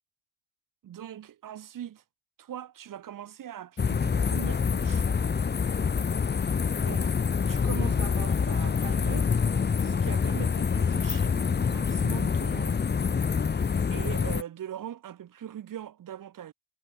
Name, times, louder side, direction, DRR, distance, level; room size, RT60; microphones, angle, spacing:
voice 1, 0.8-2.0 2.4-5.1 6.8-7.2 7.5-9.3 9.8-12.8 13.5-16.5, right 10 dB, 55° right, 4.4 m, -41 dB
sound 1, 3.8-14.4, left 6 dB, 25° left, 1.2 m, -26 dB
hypercardioid pair, 55°, 38 cm